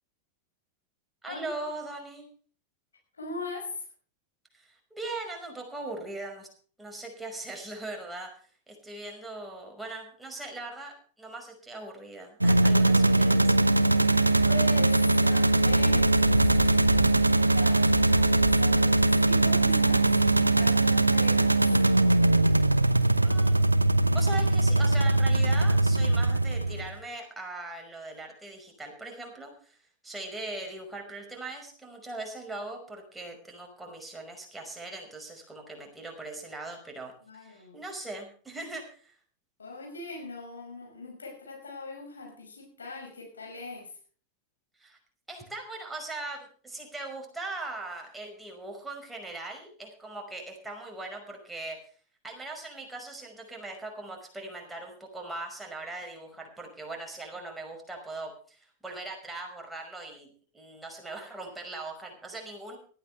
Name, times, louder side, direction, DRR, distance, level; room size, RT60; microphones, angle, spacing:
voice 1, 1.2-2.3 4.5-6.5 6.8-8.3 8.7-13.7 23.2-23.7 24.1-29.8 30.0-37.1 37.4-39.2 44.8-45.0 45.3-51.8 52.2-60.3 60.5-62.8, right 2 dB, 5° right, 1 dB, 5.4 m, -40 dB
voice 2, 3.1-3.8 14.4-21.5 37.2-37.8 39.6-44.0, left 3 dB, 70° left, 2 dB, 5.7 m, -40 dB
sound 1, 12.4-26.9, right 2 dB, 85° right, 0.8 m, -22 dB
18.5 x 14.0 x 3.4 m, 0.42 s
figure-of-eight pair, 90°, 0 cm